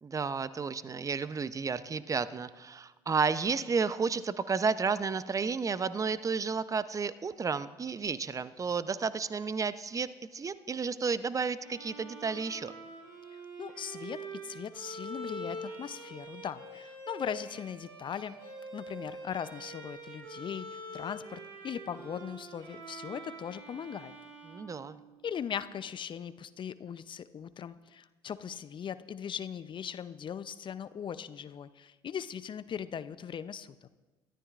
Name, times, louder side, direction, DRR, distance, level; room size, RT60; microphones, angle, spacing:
voice 1, 0.0-12.7 24.5-25.0, right 5 dB, 25° right, 14 dB, 0.7 m, -32 dB
Bowed string instrument, 11.6-25.5, right 1 dB, 75° right, 3.3 m, -45 dB
voice 2, 13.3-18.4 18.7-24.1 25.2-33.7, left 8 dB, 40° left, 14 dB, 0.6 m, -39 dB
22.5 x 14.0 x 2.5 m, 1.2 s
hypercardioid pair, 55°, 12 cm